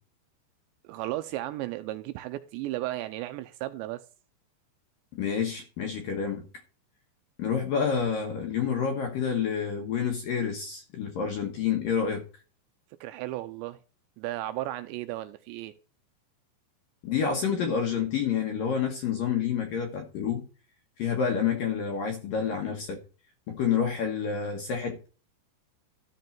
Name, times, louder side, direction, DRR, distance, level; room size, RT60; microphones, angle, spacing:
voice 1, 0.8-4.0 13.0-13.8 14.2-15.7, right 15 dB, 80° right, 2.7 m, -34 dB
voice 2, 5.1-6.4 7.4-12.2 17.0-20.4 21.0-23.0 23.5-25.1, left 7 dB, 65° left, 2.5 m, -28 dB
13.0 x 5.4 x 4.4 m
omnidirectional pair, 5.4 m